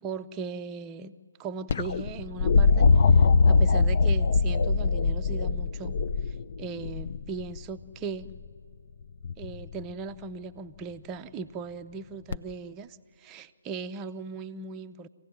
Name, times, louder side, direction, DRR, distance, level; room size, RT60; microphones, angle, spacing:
voice 1, 0.0-2.9 3.1-6.0 6.6-8.3 9.4-15.1, right 5 dB, 15° right, 8 dB, 0.6 m, -38 dB
sound 1, 1.7-7.6 9.2-9.7 12.3-12.4, left 4 dB, 40° left, 0.6 m, -22 dB
25.5 x 16.5 x 9.5 m, 2.3 s
figure-of-eight pair, 145°, 0 cm